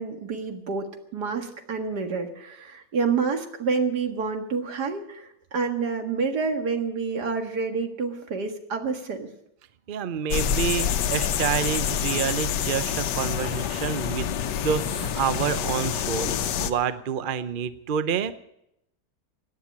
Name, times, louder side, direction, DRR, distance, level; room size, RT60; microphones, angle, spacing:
voice 1, 0.0-9.3, right 5 dB, 70° right, 6 dB, 2.3 m, -28 dB
voice 2, 9.9-14.3 14.6-18.3, right 7 dB, 45° right, 13 dB, 0.6 m, -28 dB
sound 1, 10.3-16.7, left 8 dB, 85° left, 1.5 m, -27 dB
17.0 x 10.0 x 8.6 m, 0.79 s
omnidirectional pair, 1.8 m